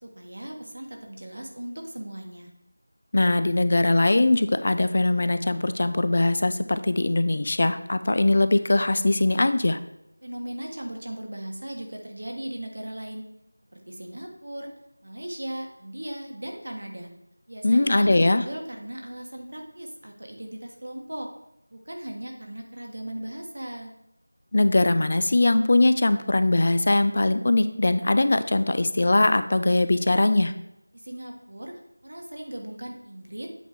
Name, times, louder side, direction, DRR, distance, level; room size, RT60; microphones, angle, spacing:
voice 1, 0.0-2.5 10.2-13.2 13.7-14.7 15.0-17.1 17.5-21.3 21.7-23.9 30.9-33.5, right 1 dB, 60° right, 2 dB, 1.4 m, -37 dB
voice 2, 3.1-9.8 17.6-18.4 24.5-30.5, left 2 dB, 35° left, 11 dB, 0.4 m, -21 dB
8.0 x 3.6 x 4.5 m, 0.83 s
figure-of-eight pair, 175°, 0 cm